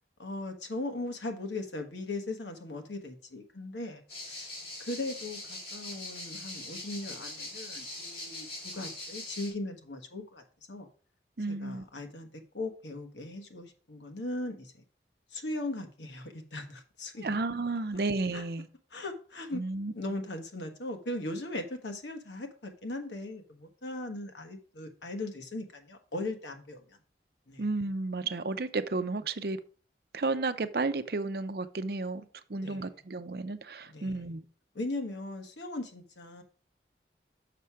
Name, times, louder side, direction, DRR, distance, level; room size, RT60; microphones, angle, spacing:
voice 1, 0.2-4.5 4.8-8.5 8.7-10.9 11.5-14.7 15.3-17.3 18.3-18.4 18.9-19.6 19.9-27.0 27.5-27.6 32.6-32.9 33.9-34.2 34.7-36.4, left 2 dB, 90° left, 1.3 m, -38 dB
sound 1, 4.1-9.5, left 2 dB, 65° left, 4.1 m, -42 dB
voice 2, 11.4-11.9 17.2-18.7 19.5-19.9 27.6-29.6 30.1-32.2 32.5-34.4, right 3 dB, 60° right, 0.6 m, -32 dB
6.7 x 5.6 x 4.8 m
head